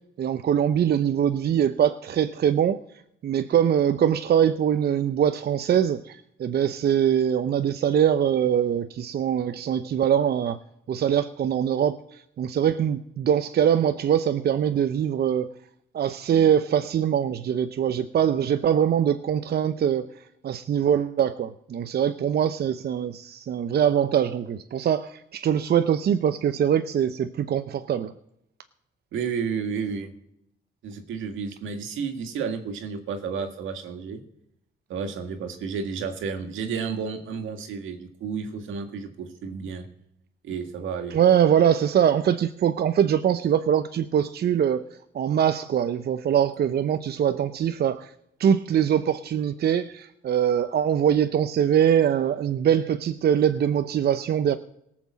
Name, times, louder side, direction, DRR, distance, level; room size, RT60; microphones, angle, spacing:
voice 1, 0.2-2.8 3.2-10.6 10.9-15.5 15.9-20.1 20.4-28.1 41.1-44.8 45.1-48.1 48.4-54.6, right 9 dB, 55° right, 0.7 m, -23 dB
voice 2, 29.1-30.1 30.8-34.2 34.9-39.9 40.4-41.2, right 6 dB, 80° right, 2.0 m, -31 dB
18.0 x 6.0 x 7.4 m
cardioid pair, 90°, 20 cm